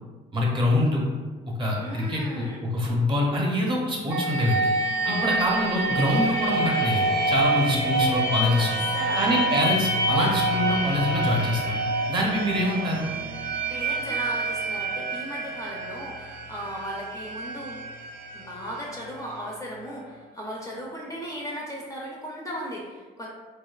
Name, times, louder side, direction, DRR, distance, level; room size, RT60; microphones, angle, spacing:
voice 1, 0.3-1.1 1.6-4.7 5.1-8.8 9.2-11.8 12.1-13.0, left 1 dB, 30° right, -2 dB, 0.6 m, -25 dB
voice 2, 1.8-2.6 5.0-5.3 8.6-8.7 8.9-9.6 13.4-17.8 18.3-23.3, equal, 20° left, -3 dB, 0.4 m, -36 dB
sound 1, 4.1-19.7, right 2 dB, 85° right, 0.4 m, -27 dB
2.7 x 2.2 x 2.3 m, 1.3 s
cardioid pair, 110°, 17 cm